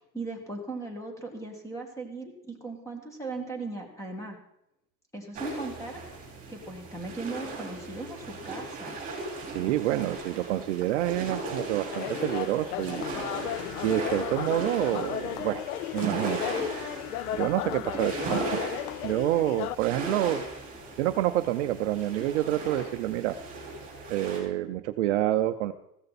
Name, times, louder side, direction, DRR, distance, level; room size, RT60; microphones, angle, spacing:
voice 1, 0.1-4.4 5.1-6.0 6.5-9.0, right 3 dB, 5° left, 3 dB, 1.9 m, -38 dB
sound 1, 5.3-24.4, right 2 dB, 15° right, 4.8 m, -38 dB
voice 2, 9.5-13.1 13.5-13.6 13.8-15.6 15.9-17.0 17.3-20.4 21.0-23.4 24.1-25.7, right 13 dB, 45° right, 9 dB, 0.7 m, -28 dB
sound 2, 11.9-19.7, left 13 dB, 65° left, 0.6 m, -35 dB
15.5 x 13.5 x 4.2 m, 0.80 s
supercardioid pair, 170°, 49 cm